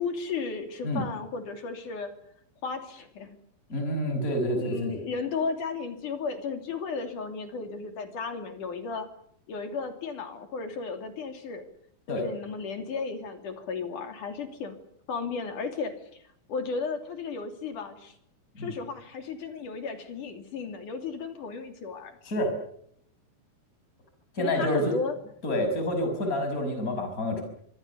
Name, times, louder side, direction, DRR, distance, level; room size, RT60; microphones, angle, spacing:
voice 1, 0.0-2.1 2.6-3.4 4.5-9.1 9.5-11.6 12.1-14.8 15.1-16.0 16.5-18.1 18.6-22.1 24.4-25.1, left 5 dB, 65° left, 6 dB, 4.3 m, -34 dB
voice 2, 3.7-4.9 12.1-12.3 18.5-18.7 22.2-22.5 24.3-24.9 25.4-27.4, left 1 dB, 20° left, 6 dB, 6.2 m, -28 dB
26.0 x 24.5 x 6.9 m, 0.69 s
omnidirectional pair, 4.0 m